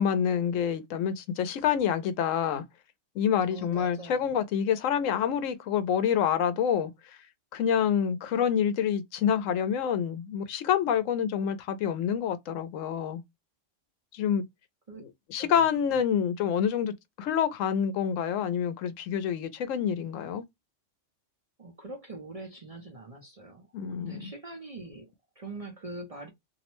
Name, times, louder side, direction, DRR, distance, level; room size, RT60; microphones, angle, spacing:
voice 1, 0.0-2.6 3.2-6.9 7.5-13.2 14.1-14.4 15.3-20.4 23.7-24.3, left 8 dB, 85° left, 0.9 m, -27 dB
voice 2, 3.5-4.4 14.9-15.0 15.4-15.6 21.6-26.3, right 2 dB, 40° right, 0.5 m, -43 dB
2.6 x 2.0 x 2.9 m
omnidirectional pair, 1.3 m